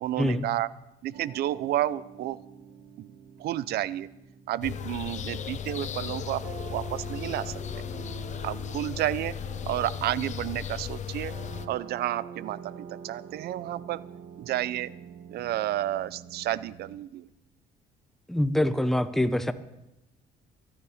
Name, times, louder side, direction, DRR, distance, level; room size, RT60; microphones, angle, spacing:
voice 1, 0.0-0.7 1.0-2.4 3.0-3.1 3.4-4.1 4.5-6.4 6.7-7.8 8.4-9.3 9.7-11.3 11.7-12.7 13.0-14.0 14.4-14.9 15.3-17.3, right 14 dB, 70° right, 18 dB, 0.6 m, -31 dB
sound 1, 1.1-17.0, right 7 dB, 90° right, 1.7 m, -46 dB
sound 2, 4.6-11.7, left 8 dB, 45° left, 0.8 m, -36 dB
voice 2, 18.3-19.5, left 1 dB, ahead, 11 dB, 0.8 m, -25 dB
23.0 x 9.7 x 5.0 m, 0.92 s
cardioid pair, 110°, 17 cm